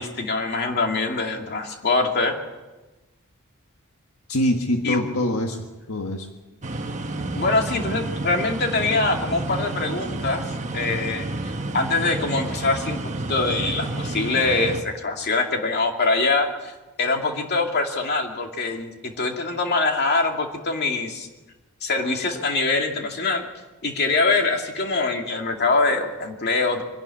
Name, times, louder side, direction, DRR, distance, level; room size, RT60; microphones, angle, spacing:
voice 1, 0.0-2.3 4.8-5.0 7.3-10.4 10.7-13.0 13.3-16.7 17.0-21.3 21.8-23.4 23.8-26.8, left 3 dB, 50° left, 3 dB, 2.6 m, -24 dB
voice 2, 4.3-6.3, left 1 dB, 75° left, 3 dB, 1.6 m, -24 dB
sound 1, 6.6-14.8, right 2 dB, 35° right, 1.2 m, -30 dB
24.5 x 11.5 x 10.0 m, 1.1 s
head